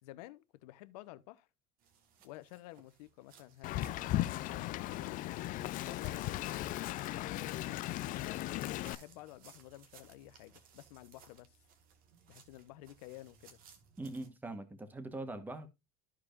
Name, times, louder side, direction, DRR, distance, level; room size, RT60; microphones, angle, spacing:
voice 1, 0.0-1.5 2.2-5.6 5.8-6.8 7.3-11.6 12.3-13.6, left 16 dB, 85° left, 0.8 m, -52 dB
sound 1, 1.8-14.3, right 7 dB, 50° right, 1.8 m, -63 dB
Wind, 3.6-8.9, left 15 dB, 45° left, 0.5 m, -37 dB
voice 2, 14.0-15.7, right 2 dB, 10° right, 1.2 m, -42 dB
14.0 x 4.8 x 2.4 m
supercardioid pair, 140°, 19 cm